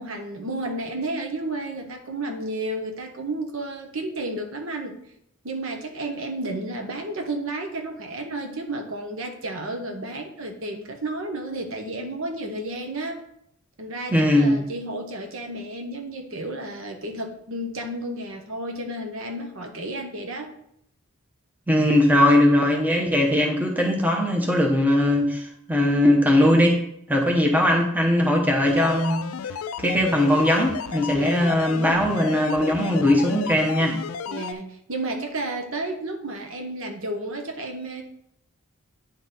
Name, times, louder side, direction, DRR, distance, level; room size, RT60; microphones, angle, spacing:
voice 1, 0.0-4.9 5.4-13.2 13.8-20.5 31.1-31.6 34.3-38.0, right 2 dB, 60° right, 4 dB, 0.9 m, -32 dB
voice 2, 14.1-14.6 21.7-26.8 27.1-29.2 29.8-34.0, left 1 dB, 5° right, 0 dB, 0.9 m, -20 dB
sound 1, 28.7-34.5, left 7 dB, 65° left, 0.3 m, -33 dB
9.6 x 4.0 x 4.0 m, 0.74 s
head